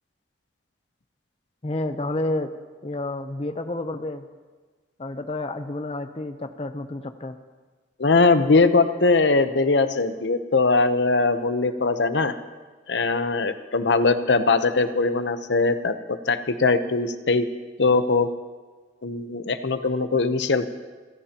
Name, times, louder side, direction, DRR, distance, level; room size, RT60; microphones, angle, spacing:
voice 1, 1.6-2.5 2.8-4.2 5.0-7.4, left 2 dB, 35° left, 8 dB, 0.7 m, -30 dB
voice 2, 8.0-12.3 12.9-17.4 17.8-18.3 19.0-20.7, left 3 dB, 75° left, 10 dB, 0.8 m, -21 dB
29.0 x 15.5 x 2.9 m, 1.4 s
head